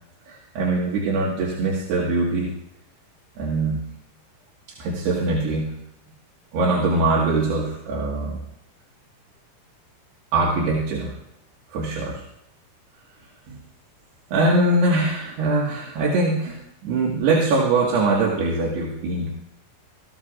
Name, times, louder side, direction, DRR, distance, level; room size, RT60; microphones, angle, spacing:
voice 1, 0.3-2.5 3.4-3.8 4.8-5.8 6.5-8.4 10.3-11.1 11.7-12.2 13.5-13.6 14.3-19.3, right 2 dB, 60° right, -4 dB, 3.4 m, -22 dB
22.5 x 14.5 x 2.5 m, 0.80 s
omnidirectional pair, 5.8 m